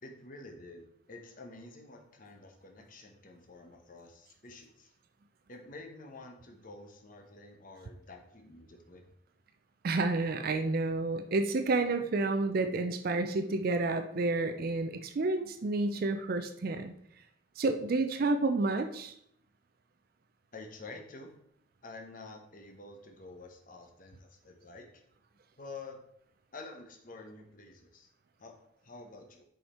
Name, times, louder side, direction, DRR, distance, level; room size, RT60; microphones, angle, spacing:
voice 1, 0.0-4.9 5.5-9.0 20.5-21.3 21.8-25.0 25.6-26.0 26.5-28.1 28.4-28.6 28.8-29.4, left 3 dB, 40° left, 3 dB, 0.9 m, -49 dB
voice 2, 9.8-16.9 17.6-19.1, right 3 dB, 45° right, 8 dB, 0.4 m, -30 dB
5.6 x 5.0 x 4.2 m, 0.72 s
head